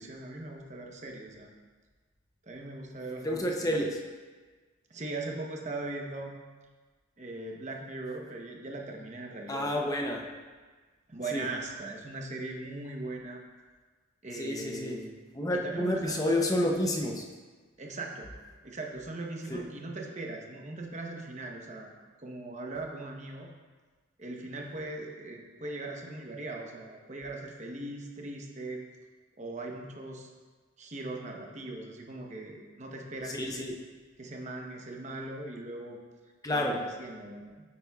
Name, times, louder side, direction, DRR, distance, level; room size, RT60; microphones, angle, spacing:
voice 1, 0.0-1.5 2.4-3.8 4.9-6.4 7.2-9.7 11.1-13.4 14.2-15.2 15.5-16.3 17.8-18.3 18.6-21.9 22.2-23.5 24.2-28.8 29.4-30.3 30.8-33.7 34.2-36.0 36.5-37.6, right 2 dB, 35° right, 0 dB, 0.9 m, -40 dB
voice 2, 3.2-4.0 9.5-10.3 11.3-11.5 14.3-15.1 15.3-17.3 19.5-19.6 33.3-33.7 36.4-36.8, left 1 dB, 15° left, 1 dB, 0.6 m, -30 dB
8.5 x 8.5 x 2.3 m, 1.4 s
head